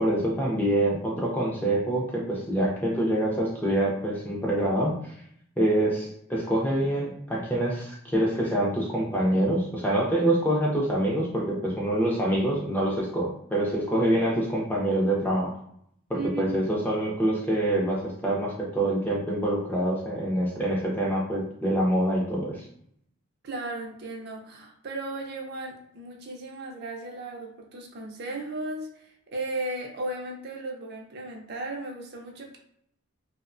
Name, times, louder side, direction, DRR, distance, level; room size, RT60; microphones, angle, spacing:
voice 1, 0.0-5.2 5.6-15.6 16.1-22.6, right 1 dB, 10° left, -3 dB, 0.4 m, -26 dB
voice 2, 16.1-16.6 23.4-32.6, right 2 dB, 50° right, 0 dB, 0.5 m, -35 dB
2.7 x 2.1 x 2.5 m, 0.70 s
head